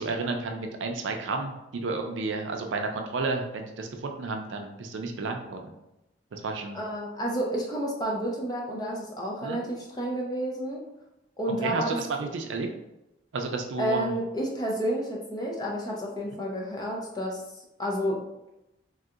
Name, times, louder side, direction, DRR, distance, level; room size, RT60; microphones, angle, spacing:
voice 1, 0.0-1.6 1.8-5.8 6.3-6.8 9.4-9.6 11.6-12.7 13.3-14.1, right 3 dB, 85° right, 4 dB, 0.4 m, -31 dB
voice 2, 6.7-10.8 11.4-12.0 13.8-17.4 17.8-18.2, equal, 20° left, -2 dB, 0.5 m, -30 dB
3.3 x 2.7 x 2.4 m, 0.90 s
head